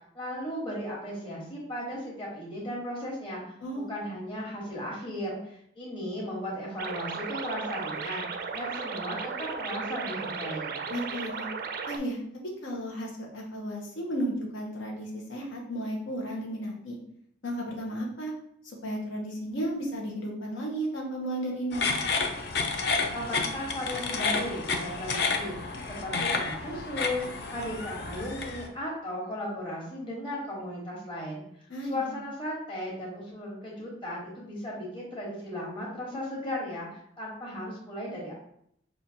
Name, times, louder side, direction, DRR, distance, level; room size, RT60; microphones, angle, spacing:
voice 1, 0.1-3.4 3.7-10.8 23.1-31.4 31.9-38.3, left 1 dB, 25° left, -4 dB, 1.2 m, -36 dB
voice 2, 3.6-3.9 10.9-11.5 11.9-17.0 17.4-18.3 18.6-22.0 31.7-32.2, right 1 dB, 90° left, -1 dB, 0.9 m, -34 dB
sound 1, 6.8-12.0, right 5 dB, 50° right, 0.3 m, -35 dB
sound 2, 21.7-28.7, left 4 dB, 60° left, 0.5 m, -30 dB
5.7 x 2.4 x 2.7 m, 0.70 s
head